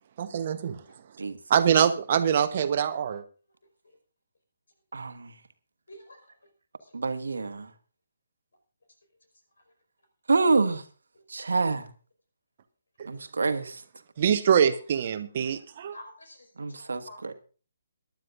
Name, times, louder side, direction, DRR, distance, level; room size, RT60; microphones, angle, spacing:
voice 1, 0.2-0.8 1.5-3.2 14.2-16.0, right 8 dB, 40° right, 1.0 m, -24 dB
voice 2, 4.9-5.3 6.9-7.7 10.3-10.8 11.3-11.9 13.0-13.8 16.6-17.3, right 3 dB, 60° right, 1.5 m, -27 dB
voice 3, 5.9-6.3 6.8-6.9 15.4-15.5 15.9-17.4, left 1 dB, 65° left, 5.1 m, -49 dB
23.0 x 11.5 x 2.6 m
figure-of-eight pair, 140°, 0 cm